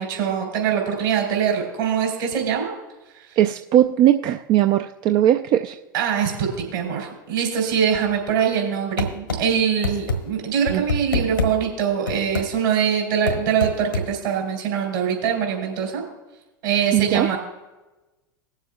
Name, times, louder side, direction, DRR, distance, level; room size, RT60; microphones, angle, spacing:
voice 1, 0.0-2.7 5.9-16.0 16.6-17.4, right 7 dB, 65° right, 0 dB, 3.5 m, -23 dB
voice 2, 3.4-5.8 10.7-10.8 16.9-17.3, right 12 dB, 40° right, 6 dB, 0.4 m, -19 dB
sound 1, 9.0-9.4 9.8-10.2 10.7-11.5 12.1-12.5 13.3-14.1, left 2 dB, 80° left, 1.3 m, -24 dB
20.5 x 7.3 x 2.3 m, 1.1 s
figure-of-eight pair, 80°, 11 cm